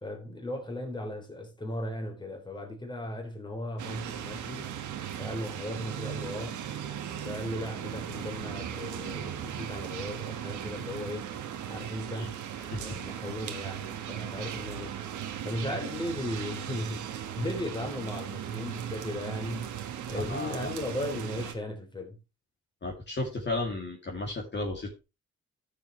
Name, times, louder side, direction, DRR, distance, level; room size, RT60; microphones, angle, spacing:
voice 1, 0.0-4.7 5.2-6.6 7.2-11.3 11.7-12.4 12.8-15.0 15.4-19.8 20.1-22.2, left 1 dB, 15° left, 3.3 m, -36 dB
sound 1, 3.8-21.5, right 9 dB, 75° right, 1.5 m, -37 dB
voice 2, 20.1-20.7 22.8-25.0, left 2 dB, 35° left, 2.7 m, -34 dB
13.5 x 6.8 x 3.2 m
cardioid pair, 90°, 30 cm